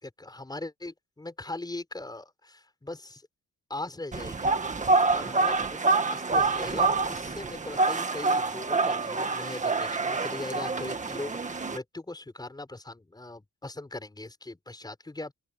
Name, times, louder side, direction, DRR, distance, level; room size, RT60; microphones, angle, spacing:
voice 1, 0.0-3.3 3.7-15.3, left 2 dB, 10° left, 5.4 m, -40 dB
sound 1, 4.1-11.8, right 3 dB, 20° right, 1.7 m, -27 dB
open air
wide cardioid pair, 155°, 32 cm